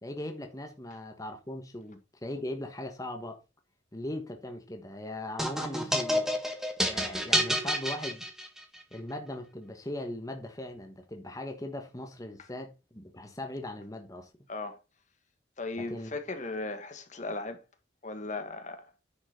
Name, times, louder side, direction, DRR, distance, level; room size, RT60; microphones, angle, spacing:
voice 1, 0.0-3.4 3.9-6.3 6.8-8.2 8.9-14.3 15.8-16.1, left 1 dB, 20° left, 1.4 m, -39 dB
sound 1, 5.4-8.8, equal, 5° right, 1.6 m, -29 dB
voice 2, 15.6-17.6 18.0-18.9, left 3 dB, 40° left, 1.5 m, -37 dB
10.0 x 6.0 x 4.4 m
head